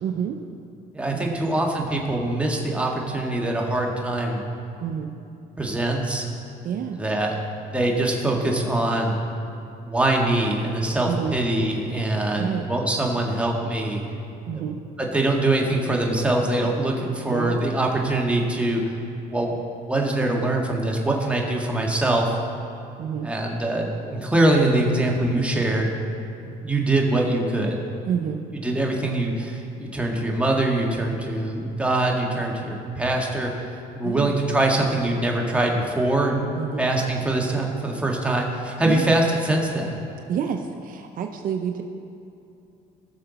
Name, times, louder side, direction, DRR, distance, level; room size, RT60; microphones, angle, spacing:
voice 1, 0.0-0.4 1.1-1.4 4.8-5.1 6.6-7.0 11.0-11.3 12.4-12.7 14.5-14.8 17.3-17.6 23.0-23.3 28.1-28.4 34.0-34.3 36.5-36.9 38.8-39.1 40.3-41.8, right 8 dB, 55° right, 5 dB, 0.7 m, -28 dB
voice 2, 0.9-4.4 5.6-6.2 7.0-7.4 7.7-9.1 9.8-14.0 14.6-14.7 15.0-18.8 19.3-19.6 19.9-22.3 23.2-25.9 26.6-27.8 28.6-33.5 33.9-36.4 36.8-40.0, right 2 dB, 5° right, -1 dB, 1.7 m, -23 dB
19.0 x 6.7 x 4.1 m, 2.7 s
cardioid pair, 110°, 17 cm